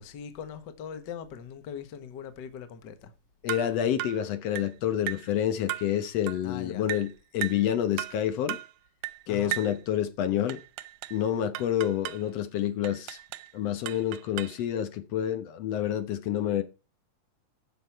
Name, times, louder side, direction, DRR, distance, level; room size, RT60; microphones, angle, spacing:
voice 1, 0.0-3.1 6.4-6.9 9.3-9.5, left 8 dB, 80° left, 0.9 m, -41 dB
voice 2, 3.4-8.6 9.3-10.6 11.1-13.2 13.5-16.6, left 10 dB, 65° left, 1.7 m, -28 dB
sound 1, 3.5-3.7 4.0-4.2 4.6-4.7 5.1-5.3 5.7-5.9 6.3-6.4 6.9-7.1 7.4-7.7 8.0-8.2 8.5-8.7 9.0-9.2 9.5-9.8 10.5-11.2 11.5-12.2 12.8-13.5 13.9-14.6, right 17 dB, 85° right, 2.4 m, -36 dB
14.5 x 6.0 x 4.6 m
omnidirectional pair, 3.9 m